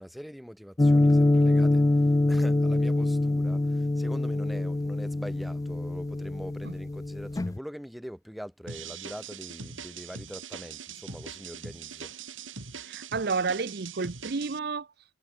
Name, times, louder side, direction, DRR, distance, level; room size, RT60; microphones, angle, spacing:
voice 1, 0.0-12.1, equal, ahead, 1.4 m, -43 dB
sound 1, 0.8-7.6, left 2 dB, 20° left, 0.3 m, -24 dB
sound 2, 8.7-14.6, right 6 dB, 85° right, 5.1 m, -42 dB
voice 2, 12.8-14.9, right 4 dB, 55° right, 0.7 m, -31 dB
head